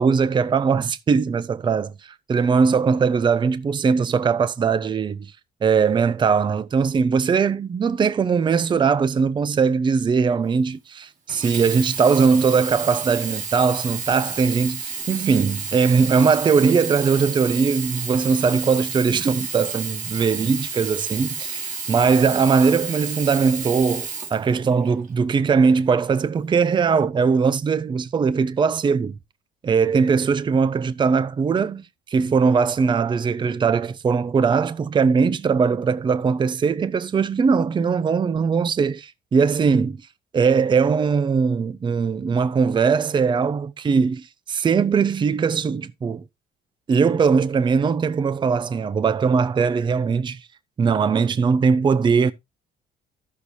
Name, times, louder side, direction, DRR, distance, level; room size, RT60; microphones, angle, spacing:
voice 1, 0.0-5.3 5.6-29.2 29.6-40.0 40.3-46.2 46.9-50.5 50.8-52.3, right 5 dB, 30° right, 0.6 m, -20 dB
Sink (filling or washing), 11.3-25.1 25.8-25.9, right 5 dB, 45° right, 2.3 m, -31 dB
14.5 x 6.5 x 2.7 m
cardioid pair, 110°, 17 cm